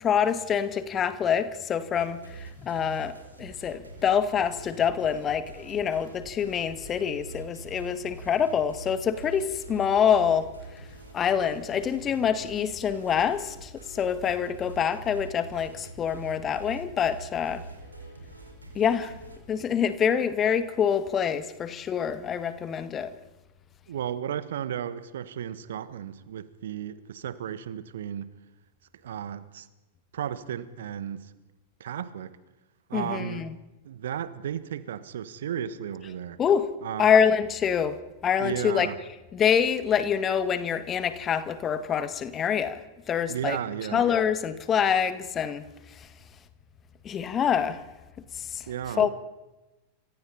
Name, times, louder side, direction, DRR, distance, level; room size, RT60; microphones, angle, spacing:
voice 1, 0.0-10.5 11.1-17.6 18.8-19.1 19.5-23.1 32.9-33.5 36.4-36.7 37.0-38.9 39.3-42.8 43.1-43.6 43.9-45.6 47.0-47.8 48.4-48.6 49.0-49.1, left 8 dB, 25° left, 1.8 m, -26 dB
sound 1, 1.9-19.4, right 2 dB, 80° right, 5.5 m, -45 dB
voice 2, 23.9-28.3 29.0-29.7 30.1-31.3 31.8-32.4 32.9-33.4 33.8-36.4 36.8-37.1 38.4-39.0 43.3-44.1 48.7-49.1, right 9 dB, 60° right, 1.4 m, -34 dB
28.5 x 25.5 x 4.3 m
figure-of-eight pair, 90°, 0 cm